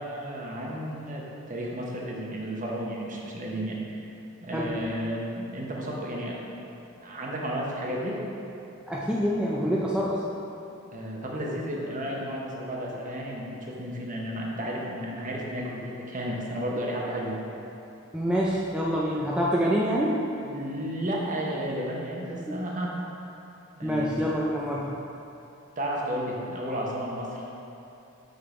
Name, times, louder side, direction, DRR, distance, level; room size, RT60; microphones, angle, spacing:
voice 1, 0.0-4.0 4.4-6.4 7.0-8.2 10.7-17.4 20.4-22.9 23.7-24.1 25.8-27.5, equal, 40° right, -3 dB, 0.9 m, -33 dB
voice 2, 8.9-10.2 18.1-20.2 22.5-22.6 23.8-24.9, equal, 5° right, -5 dB, 0.4 m, -26 dB
6.6 x 3.8 x 4.8 m, 2.8 s
head